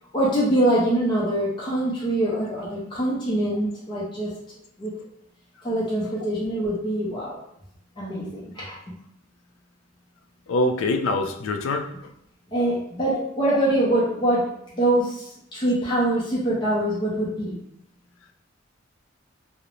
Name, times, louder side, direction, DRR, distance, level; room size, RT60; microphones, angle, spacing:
voice 1, 0.1-4.3 4.8-4.9 5.6-7.4 8.0-8.8 12.5-15.2 15.5-17.6, right 1 dB, 25° left, -7 dB, 0.5 m, -24 dB
voice 2, 10.5-11.9 13.1-13.2, left 2 dB, 75° left, 6 dB, 0.3 m, -24 dB
2.4 x 2.0 x 2.9 m, 0.77 s
head